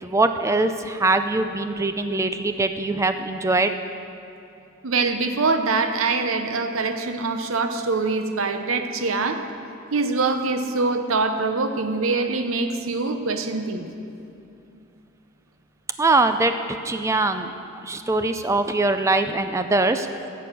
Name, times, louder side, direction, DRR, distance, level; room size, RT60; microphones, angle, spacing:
voice 1, 0.0-3.7 16.0-17.5 17.8-20.1, right 2 dB, 15° right, 8 dB, 0.4 m, -22 dB
voice 2, 4.8-9.4 9.9-13.9, right 3 dB, 75° right, 7 dB, 0.8 m, -24 dB
15.5 x 7.0 x 6.1 m, 2.6 s
head